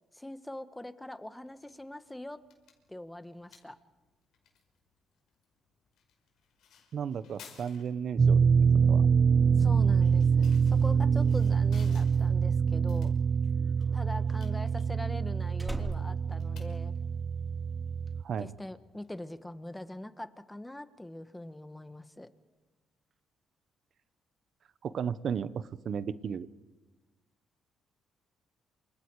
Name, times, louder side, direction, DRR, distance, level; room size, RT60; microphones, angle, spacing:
voice 1, 0.1-2.4 2.9-3.8 9.6-13.1 13.9-16.9 18.4-22.3, left 1 dB, 10° left, 11 dB, 1.4 m, -42 dB
sound 1, 1.4-19.8, left 7 dB, 80° left, 5.4 m, -61 dB
voice 2, 6.9-9.1 18.2-18.5 24.8-26.5, right 7 dB, 60° right, 15 dB, 1.0 m, -35 dB
sound 2, 8.2-18.2, right 6 dB, 40° right, 0.7 m, -25 dB
Slam, 13.3-17.4 17.7-18.1, right 1 dB, 10° right, 3.3 m, -43 dB
28.5 x 27.0 x 4.9 m, 1.2 s
cardioid pair, 90°, 0 cm